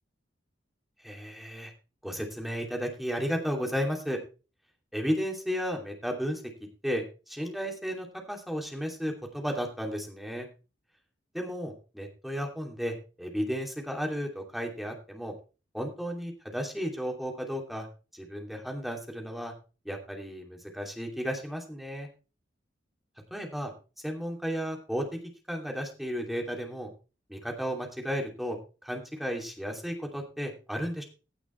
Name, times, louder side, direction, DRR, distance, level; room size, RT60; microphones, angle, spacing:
voice 1, 1.0-1.7 2.0-4.2 4.9-6.4 6.8-10.5 11.3-15.3 15.7-17.9 18.1-19.5 19.8-22.1 23.3-23.7 24.0-25.1 25.5-26.9 27.3-28.6 28.8-31.0, equal, ahead, 1 dB, 2.8 m, -33 dB
16.0 x 6.0 x 4.5 m, 0.33 s
head